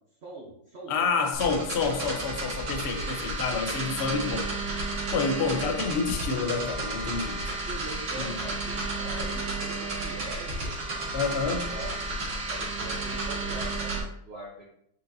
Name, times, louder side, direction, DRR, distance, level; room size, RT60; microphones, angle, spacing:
voice 1, 0.2-0.9 1.4-1.9 3.8-3.9 7.7-10.8 11.2-12.2 12.5-14.6, right 2 dB, 45° right, -4 dB, 0.9 m, -42 dB
voice 2, 0.9-4.5 5.1-7.4 8.2-8.3 11.1-11.6, left 4 dB, 70° left, 5 dB, 0.6 m, -28 dB
sound 1, 1.3-14.0, right 2 dB, 65° right, 2.4 m, -32 dB
6.4 x 5.5 x 2.7 m, 0.73 s
omnidirectional pair, 2.3 m